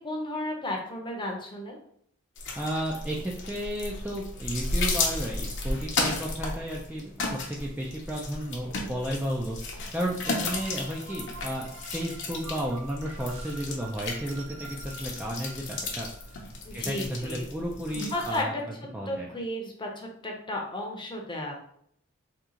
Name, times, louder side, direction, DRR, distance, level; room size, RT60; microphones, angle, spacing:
voice 1, 0.0-1.8 16.6-17.5 18.1-18.4 19.1-21.6, left 1 dB, 20° left, 0 dB, 0.7 m, -33 dB
sound 1, 2.4-18.4, left 3 dB, 55° left, 0.7 m, -34 dB
voice 2, 2.6-16.4 16.7-18.5 18.9-19.3, equal, 5° right, -3 dB, 0.3 m, -33 dB
sound 2, 10.2-16.3, right 3 dB, 65° right, 0.7 m, -47 dB
2.8 x 2.3 x 3.7 m, 0.68 s
head